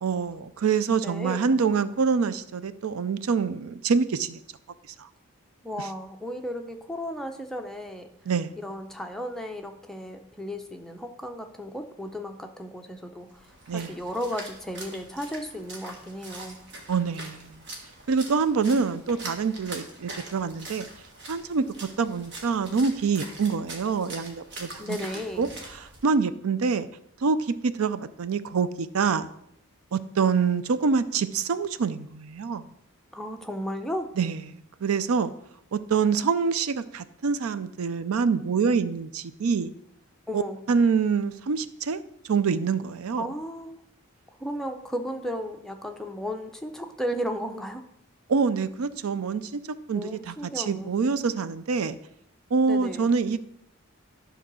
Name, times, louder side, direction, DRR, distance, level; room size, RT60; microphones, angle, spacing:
voice 1, 0.0-4.4 5.0-5.1 5.8-5.9 8.3-8.5 13.7-13.9 16.9-17.6 18.1-20.9 21.3-25.0 25.4-25.5 26.0-26.9 27.2-29.3 29.9-32.7 34.2-34.4 34.8-35.3 35.7-39.7 40.3-40.4 40.7-43.2 48.3-49.6 49.9-52.0 52.5-53.4, right 5 dB, 90° right, 14 dB, 0.5 m, -26 dB
voice 2, 1.0-1.5 5.6-8.1 8.6-16.6 24.8-25.5 33.1-34.1 40.3-40.6 43.2-43.8 44.4-47.8 49.9-50.9 52.6-53.1, equal, ahead, 4 dB, 0.6 m, -34 dB
Splash splatter, 13.3-26.0, right 2 dB, 55° right, 1.6 m, -43 dB
11.0 x 4.0 x 6.1 m, 0.77 s
head